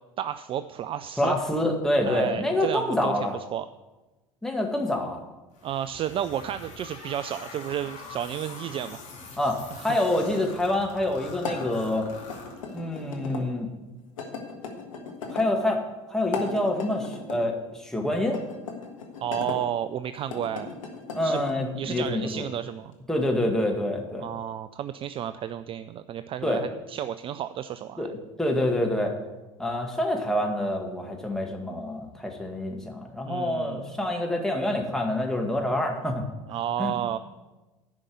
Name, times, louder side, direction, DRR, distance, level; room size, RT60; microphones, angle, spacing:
voice 1, 0.2-1.4 2.1-3.7 5.6-9.0 9.7-10.0 19.2-20.7 21.2-21.4 21.8-22.9 24.2-28.1 33.3-33.9 36.5-37.2, right 10 dB, 30° right, 13 dB, 0.4 m, -32 dB
voice 2, 1.2-3.4 4.4-5.2 9.4-12.1 12.7-13.7 15.3-15.8 16.1-18.4 21.1-22.5 23.1-24.3 26.4-26.6 28.0-28.1 28.4-29.1 29.6-36.2 36.8-36.9, left 1 dB, 5° left, 1 dB, 1.9 m, -27 dB
sound 1, 5.5-13.1, left 4 dB, 45° left, 2.8 m, -44 dB
sound 2, 11.4-13.4 14.2-15.5 16.2-17.4 18.3-19.6 20.2-21.6, left 4 dB, 75° left, 1.5 m, -37 dB
10.5 x 5.3 x 8.2 m, 1.1 s
figure-of-eight pair, 75°, 17 cm